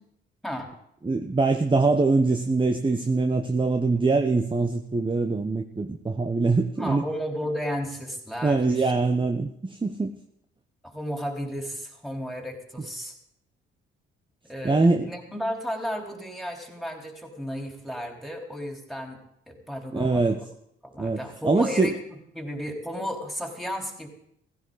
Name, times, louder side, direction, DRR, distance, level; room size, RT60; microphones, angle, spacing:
voice 1, 1.0-7.0 8.4-10.2 14.6-15.1 19.9-20.4 21.0-21.9, right 3 dB, 15° right, 7 dB, 1.0 m, -23 dB
voice 2, 6.7-8.9 10.8-13.2 14.4-19.2 19.5-20.4 20.8-24.1, equal, ahead, 2 dB, 3.7 m, -33 dB
16.0 x 15.5 x 4.0 m, 0.71 s
figure-of-eight pair, 45°, 29 cm